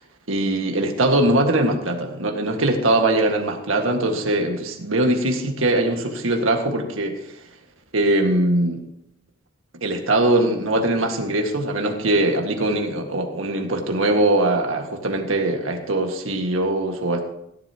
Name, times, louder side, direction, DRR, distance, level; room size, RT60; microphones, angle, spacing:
voice 1, 0.3-7.4 7.9-8.8 9.8-17.2, right 1 dB, 85° right, 3 dB, 1.9 m, -21 dB
16.5 x 11.5 x 3.0 m, 0.80 s
head